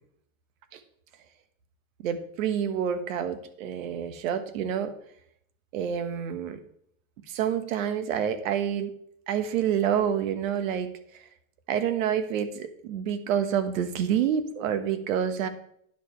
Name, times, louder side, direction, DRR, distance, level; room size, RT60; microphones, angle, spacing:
voice 1, 2.0-4.9 5.7-6.6 7.3-8.9 9.3-11.2 11.7-15.5, right 8 dB, 70° right, 10 dB, 1.3 m, -28 dB
10.0 x 6.7 x 4.5 m, 0.68 s
supercardioid pair, 125°, 42 cm